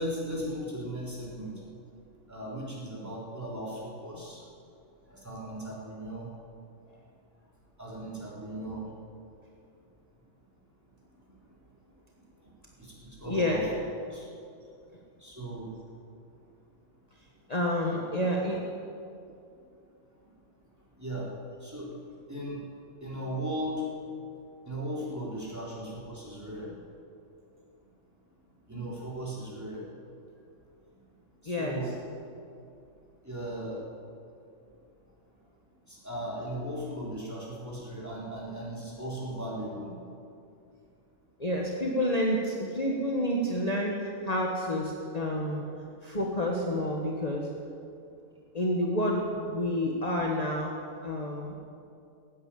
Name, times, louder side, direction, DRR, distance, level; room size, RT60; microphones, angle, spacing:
voice 1, 0.0-1.5 2.3-4.4 5.1-6.3 7.8-8.9 12.8-12.9 13.2-13.6 14.0-14.3 15.2-15.7 17.9-18.0 21.0-21.3 21.6-21.9 22.3-22.6 23.0-23.8 24.7-26.7 28.7-29.8 31.4-31.9 33.2-33.8 35.9-39.9, right 1 dB, 15° right, -6 dB, 3.8 m, -37 dB
voice 2, 13.3-13.7 17.5-18.7 31.4-31.8 41.4-45.7 46.0-47.5 48.5-50.7 51.0-51.5, left 1 dB, 30° left, -2 dB, 1.4 m, -29 dB
16.5 x 9.5 x 8.9 m, 2.5 s
omnidirectional pair, 1.3 m